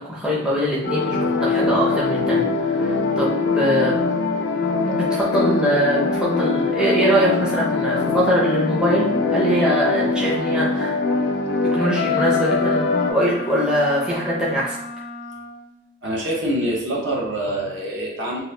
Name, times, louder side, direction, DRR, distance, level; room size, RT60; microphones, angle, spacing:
voice 1, 0.0-4.0 4.9-10.9 11.7-14.8, equal, 5° right, -6 dB, 0.5 m, -22 dB
sound 1, 0.8-13.1, left 3 dB, 55° left, 0.4 m, -22 dB
Wind instrument woodwind instrument, 11.7-15.7, left 1 dB, 80° right, 1.1 m, -35 dB
voice 2, 16.0-18.4, right 1 dB, 60° right, -2 dB, 0.7 m, -25 dB
2.8 x 2.4 x 3.1 m, 0.86 s
head